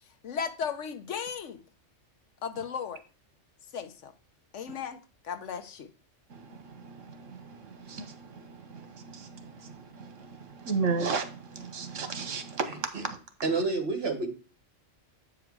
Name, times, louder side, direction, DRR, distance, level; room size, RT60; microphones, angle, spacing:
voice 1, 0.2-1.6 2.4-3.0 3.7-4.1 4.5-5.9, left 7 dB, 70° left, 1.1 m, -36 dB
voice 2, 6.3-13.2, right 4 dB, 75° right, 1.4 m, -35 dB
voice 3, 12.7-13.0 13.4-14.3, right 3 dB, 50° right, 1.7 m, -29 dB
8.1 x 4.8 x 4.6 m
omnidirectional pair, 1.3 m